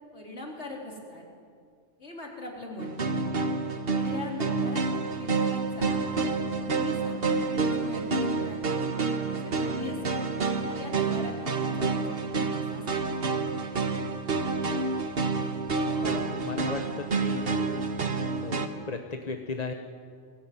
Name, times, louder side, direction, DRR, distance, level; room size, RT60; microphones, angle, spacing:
voice 1, 0.1-1.2 2.0-3.2 4.0-6.0 6.5-10.2 10.7-13.4, left 1 dB, 70° left, -1 dB, 4.1 m, -41 dB
sound 1, 2.8-18.7, right 4 dB, 55° right, 1.6 m, -28 dB
voice 2, 16.0-17.5 18.4-18.6 18.9-19.7, left 4 dB, 35° left, 5 dB, 1.1 m, -35 dB
22.5 x 18.0 x 9.5 m, 2.1 s
omnidirectional pair, 1.2 m